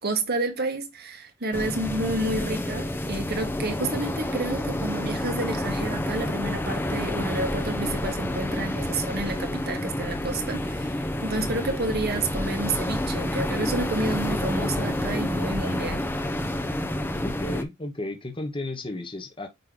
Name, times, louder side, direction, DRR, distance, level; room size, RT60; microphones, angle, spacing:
voice 1, 0.0-16.0, right 2 dB, 55° right, 1.6 m, -30 dB
sound 1, 1.5-17.6, left 1 dB, 10° left, 0.9 m, -29 dB
voice 2, 17.2-19.5, left 2 dB, 25° left, 1.3 m, -33 dB
9.1 x 3.3 x 3.8 m
head